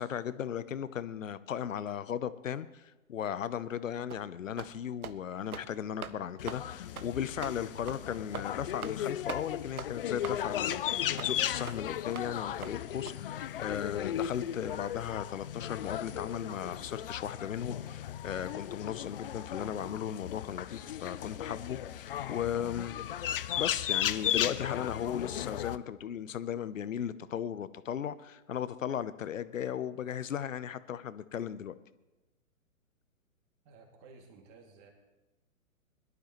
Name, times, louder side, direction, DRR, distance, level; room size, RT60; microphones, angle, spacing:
voice 1, 0.0-10.8 11.1-23.0 23.6-31.7, left 9 dB, 65° left, 15 dB, 0.8 m, -36 dB
sound 1, 4.1-4.2 4.6-4.7 5.0-5.2 5.5-5.7 6.0-6.2 6.5-6.6 7.0-7.1 7.4-7.6 7.9-8.0 8.3-8.5 8.8-9.0 9.3-9.4 9.8-9.9 10.2-10.4 10.7-10.8 11.2-11.3 11.7-11.8 12.1-12.3 12.6-12.7 13.1-13.2, right 7 dB, 85° right, 0.8 m, -41 dB
sound 2, 6.4-25.8, left 11 dB, 40° left, 0.5 m, -36 dB
voice 2, 33.6-34.9, right 4 dB, 30° right, 2 dB, 2.4 m, -55 dB
22.0 x 12.0 x 3.1 m, 1.1 s
figure-of-eight pair, 125°, 42 cm